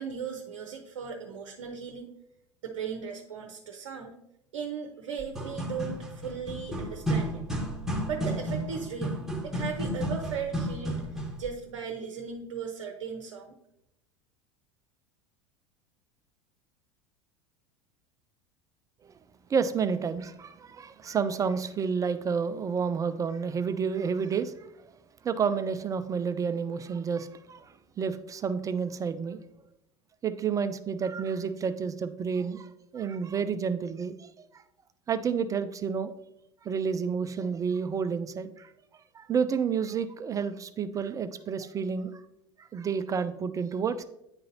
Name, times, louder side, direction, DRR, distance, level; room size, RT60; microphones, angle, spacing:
voice 1, 0.0-2.1 2.6-4.2 4.5-7.4 8.1-9.2 9.4-11.0 11.4-13.5, right 6 dB, 60° right, 2 dB, 0.7 m, -37 dB
sound 1, 5.2-11.5, equal, ahead, 1.3 m, -32 dB
voice 2, 19.5-24.5 24.8-24.9 25.2-29.4 30.2-34.6 35.1-36.1 36.6-38.7 39.1-42.2 42.6-44.0, right 6 dB, 20° right, 11 dB, 0.3 m, -30 dB
9.6 x 3.8 x 2.8 m, 0.83 s
figure-of-eight pair, 75°, 16 cm